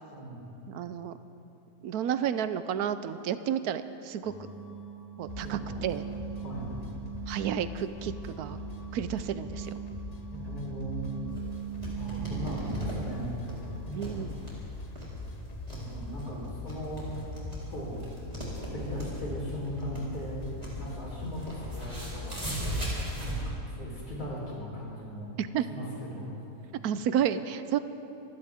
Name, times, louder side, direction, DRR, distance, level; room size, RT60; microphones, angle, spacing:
voice 1, 0.1-0.5 5.4-5.8 6.4-6.7 10.3-11.1 11.9-13.6 13.8-14.2 15.7-17.1 17.7-18.1 18.7-20.4 20.8-22.5 23.1-25.3 25.7-26.3, equal, 70° left, -5 dB, 4.6 m, -38 dB
voice 2, 0.7-1.1 1.8-4.3 5.2-6.1 7.3-8.1 8.4-8.6 8.9-9.7 12.2-12.5 13.9-14.4 25.4-25.7 26.8-27.8, right 9 dB, 70° right, 12 dB, 1.1 m, -31 dB
sound 1, 4.2-13.9, right 9 dB, 90° left, 2.2 m, -41 dB
sound 2, 5.3-23.1, left 4 dB, 40° left, 0.5 m, -43 dB
sound 3, 11.3-23.5, right 1 dB, 25° right, 4.0 m, -39 dB
26.0 x 15.5 x 3.6 m, 2.9 s
omnidirectional pair, 1.7 m